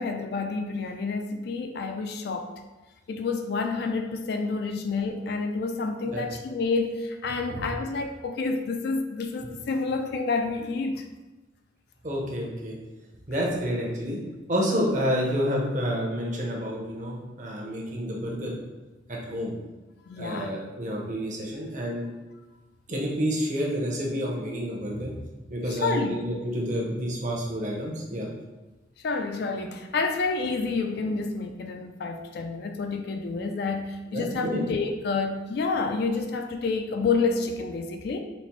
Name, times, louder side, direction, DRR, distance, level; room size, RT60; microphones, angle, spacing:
voice 1, 0.0-2.5 3.1-11.1 20.1-20.5 25.7-26.2 29.0-38.2, left 4 dB, 55° left, 5 dB, 0.3 m, -29 dB
voice 2, 12.0-12.7 13.3-14.2 14.5-18.6 19.1-19.5 20.2-22.1 22.9-25.1 25.5-28.3 34.1-34.6, equal, 40° right, -2 dB, 0.8 m, -29 dB
4.1 x 2.0 x 4.4 m, 1.1 s
head